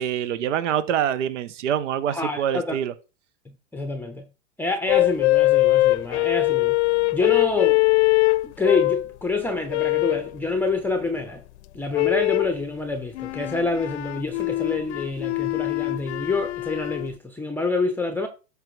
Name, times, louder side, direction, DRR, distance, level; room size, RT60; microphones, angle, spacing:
voice 1, 0.0-2.9, right 9 dB, 80° right, 0.8 m, -25 dB
voice 2, 2.1-2.8 3.7-4.2 4.6-6.8 7.1-7.8 8.4-11.4 11.7-18.3, left 3 dB, 5° left, 0.6 m, -27 dB
sound 1, 4.9-9.1 9.7-10.3 11.9-12.6 13.1-17.1, left 20 dB, 65° left, 0.6 m, -22 dB
13.0 x 4.8 x 3.2 m
hypercardioid pair, 115°, 36 cm